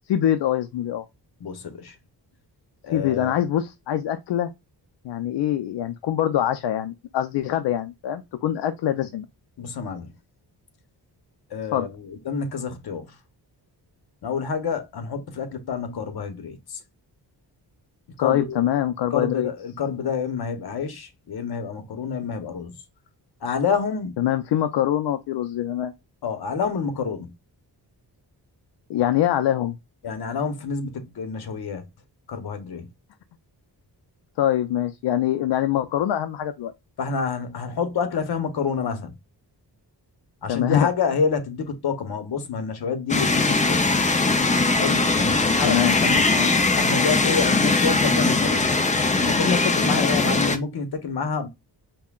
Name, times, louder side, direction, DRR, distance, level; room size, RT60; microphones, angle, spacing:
voice 1, 0.1-1.0 2.9-4.5 5.0-9.3 11.7-11.9 18.2-19.5 24.2-25.9 28.9-29.8 34.4-36.7 40.5-40.9 45.6-46.5, left 11 dB, 80° left, 0.5 m, -24 dB
voice 2, 1.4-1.9 2.8-3.3 9.6-10.1 11.5-13.1 14.2-16.8 18.2-18.6 19.1-22.7 23.4-24.2 26.2-27.3 30.0-31.8 32.3-32.9 37.0-39.1 40.4-43.8 44.8-45.9 46.1-46.2 46.8-48.7 49.2-51.5, left 5 dB, 65° left, 0.9 m, -28 dB
sound 1, 43.1-50.6, left 3 dB, 20° left, 0.4 m, -20 dB
5.5 x 2.2 x 2.3 m
wide cardioid pair, 130°, 41 cm